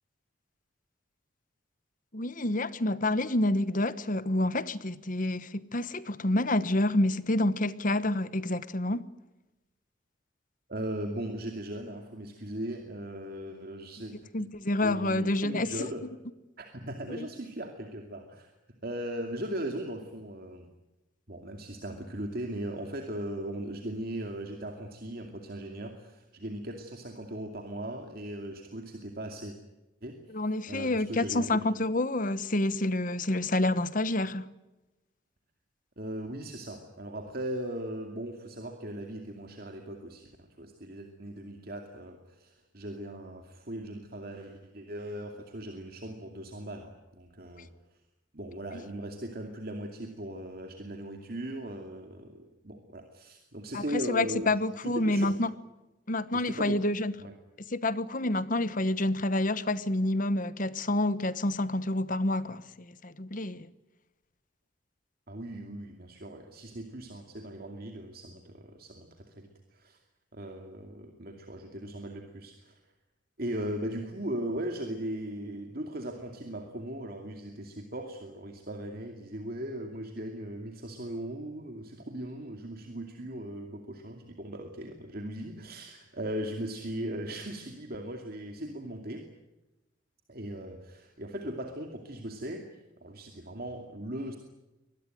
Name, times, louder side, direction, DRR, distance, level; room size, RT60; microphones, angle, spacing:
voice 1, 2.1-9.1 14.3-15.9 17.1-17.3 30.3-34.5 53.7-55.5 56.1-57.1 57.7-63.7, left 1 dB, 40° left, 1.1 m, -28 dB
voice 2, 10.7-14.1 14.8-16.0 16.6-18.5 18.8-20.7 21.3-29.6 30.0-31.5 36.0-47.7 48.3-54.5 54.8-55.3 56.3-56.8 57.2-57.3 65.3-70.0 70.3-72.8 73.4-89.2 90.3-92.7 93.0-94.4, right 1 dB, 50° right, 2.5 m, -38 dB
24.5 x 19.5 x 9.2 m
head